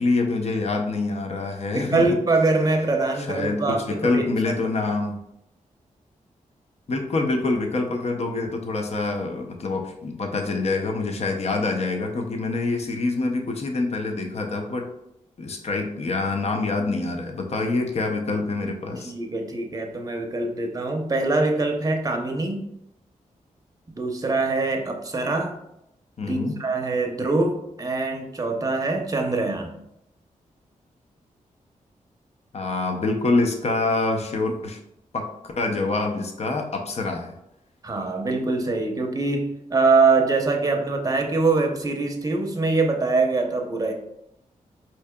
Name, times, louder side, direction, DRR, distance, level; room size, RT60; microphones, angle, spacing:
voice 1, 0.0-2.2 3.2-5.2 6.9-14.9 15.4-19.1 26.2-26.6 32.5-34.8 35.1-35.3 35.6-37.3, left 3 dB, 50° left, 4 dB, 0.6 m, -26 dB
voice 2, 1.7-4.5 19.0-22.7 24.0-25.6 26.3-29.8 37.8-43.9, right 3 dB, 25° right, 3 dB, 0.6 m, -23 dB
4.5 x 2.8 x 2.2 m, 0.81 s
cardioid pair, 60°, 14 cm